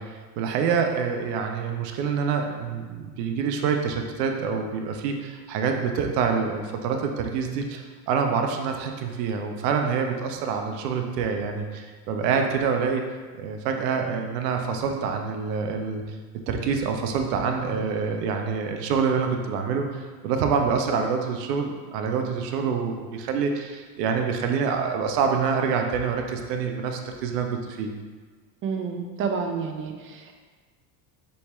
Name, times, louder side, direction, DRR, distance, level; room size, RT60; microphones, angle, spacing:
voice 1, 0.0-13.1 13.3-16.0 16.5-27.9, right 6 dB, 75° right, 4 dB, 0.6 m, -26 dB
voice 2, 28.6-30.3, right 5 dB, 30° right, 4 dB, 0.4 m, -29 dB
4.2 x 3.1 x 2.3 m, 1.4 s
hypercardioid pair, 80°, 49 cm